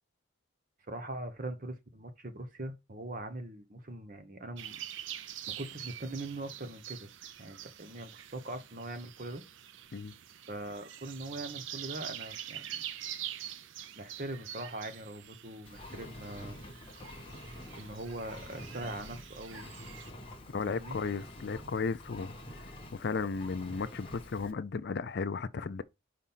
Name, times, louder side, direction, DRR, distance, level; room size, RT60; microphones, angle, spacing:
voice 1, 0.9-4.8 5.1-7.1 7.4-9.4 10.5-12.9 13.9-16.6 17.7-19.7 20.7-21.0, right 2 dB, 40° right, 1.0 m, -42 dB
sound 1, 4.6-20.1, right 11 dB, 65° right, 0.5 m, -45 dB
Engine, 15.6-24.5, left 1 dB, 25° left, 1.1 m, -47 dB
voice 2, 20.5-22.3 22.9-25.8, left 4 dB, 50° left, 0.4 m, -34 dB
5.1 x 4.2 x 5.6 m
head